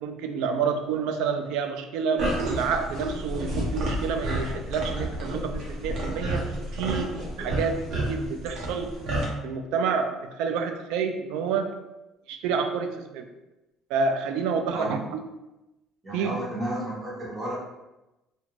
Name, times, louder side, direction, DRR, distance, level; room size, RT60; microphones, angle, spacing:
voice 1, 0.0-9.0 9.4-11.7 12.3-13.3 13.9-15.0 16.1-16.4, right 5 dB, 80° right, 6 dB, 0.3 m, -29 dB
sound 1, 2.2-9.2, right 1 dB, 60° right, 0.8 m, -30 dB
voice 2, 16.0-17.6, right 1 dB, 20° right, -6 dB, 1.1 m, -32 dB
2.4 x 2.2 x 3.0 m, 0.99 s
cardioid pair, 120°, 0 cm